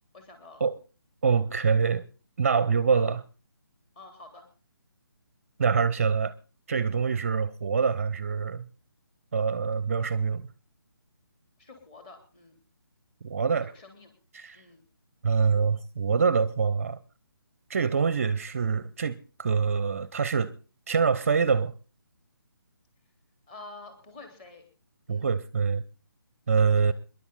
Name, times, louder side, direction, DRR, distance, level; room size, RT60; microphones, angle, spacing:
voice 1, 0.1-0.7 2.9-3.2 3.9-4.5 11.6-12.5 13.6-14.1 14.5-14.8 23.5-24.6 25.1-25.3 26.8-26.9, left 3 dB, 25° left, 3.5 m, -48 dB
voice 2, 1.2-2.0 2.4-3.2 5.6-6.3 6.7-8.6 9.3-10.5 13.2-13.7 14.3-14.6 15.2-17.0 17.7-20.5 20.9-21.7 25.1-25.8 26.5-26.9, right 5 dB, 35° right, 0.6 m, -25 dB
26.0 x 11.0 x 4.0 m
figure-of-eight pair, 145°, 12 cm